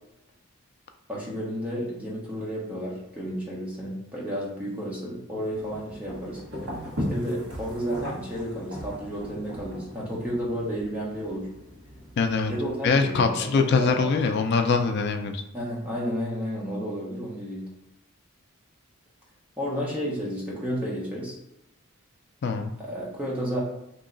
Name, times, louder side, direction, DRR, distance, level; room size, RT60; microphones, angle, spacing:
voice 1, 1.1-6.4 7.1-11.5 12.5-14.3 15.5-17.6 19.6-21.4 22.8-23.6, equal, 5° right, -5 dB, 1.0 m, -32 dB
sound 1, 5.5-12.7, equal, 65° right, 1.5 m, -37 dB
voice 2, 12.2-12.5 12.8-15.4 22.4-22.7, left 4 dB, 50° left, 6 dB, 0.3 m, -23 dB
3.0 x 2.8 x 3.8 m, 0.90 s
head